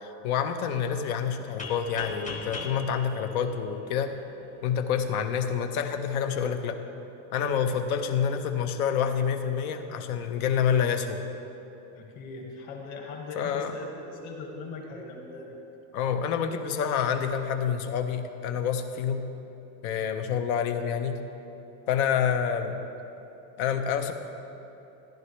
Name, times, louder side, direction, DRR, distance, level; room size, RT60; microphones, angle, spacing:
voice 1, 0.0-4.1 4.6-6.8 7.3-11.2 13.4-13.7 15.9-19.2 19.8-21.2 21.9-22.8 23.6-24.1, left 7 dB, 85° left, 7 dB, 1.0 m, -27 dB
sound 1, 1.6-4.3, left 4 dB, 20° left, 0.6 m, -40 dB
voice 2, 11.9-15.5, left 3 dB, 50° left, 1 dB, 1.7 m, -39 dB
14.5 x 10.5 x 3.2 m, 3.0 s
cardioid pair, 165°, 42 cm